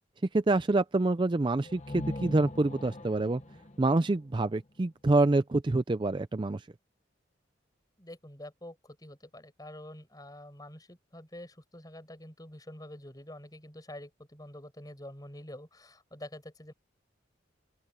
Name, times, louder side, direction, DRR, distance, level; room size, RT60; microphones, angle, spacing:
voice 1, 0.3-3.4 3.8-6.6, right 2 dB, 25° right, 0.4 m, -26 dB
sound 1, 1.6-5.4, left 1 dB, 35° left, 1.2 m, -42 dB
voice 2, 8.0-16.7, left 1 dB, 20° left, 6.3 m, -47 dB
open air
head